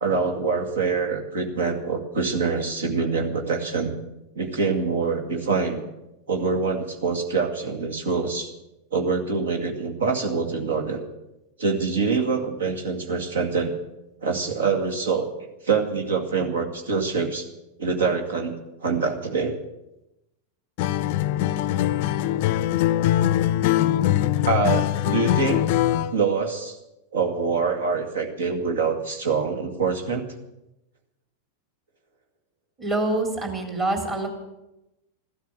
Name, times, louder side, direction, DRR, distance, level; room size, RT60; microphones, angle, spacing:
voice 1, 0.0-4.0 4.4-5.8 6.3-8.5 8.9-11.0 11.6-13.7 14.2-15.3 15.6-17.4 17.8-18.5 18.8-19.6 24.4-25.6 26.1-26.8 27.1-30.3, right 4 dB, 65° right, 4 dB, 2.2 m, -25 dB
Acoustic guitar, 20.8-26.2, left 12 dB, 45° left, 0.5 m, -22 dB
voice 2, 32.8-34.3, right 2 dB, 25° right, 3 dB, 3.3 m, -25 dB
14.5 x 13.0 x 7.7 m, 0.92 s
figure-of-eight pair, 90°, 0 cm